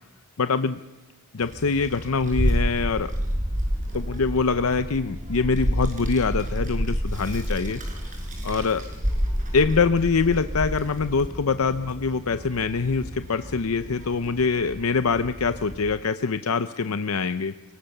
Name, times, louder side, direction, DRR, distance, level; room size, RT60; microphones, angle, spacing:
voice 1, 0.4-0.8 1.3-3.1 3.9-7.8 8.4-8.8 9.5-17.5, left 4 dB, 70° left, 10 dB, 0.7 m, -24 dB
Child speech kid speaking, 1.4-15.8, equal, 35° right, 5.9 m, -30 dB
30.0 x 18.0 x 6.7 m, 1.1 s
head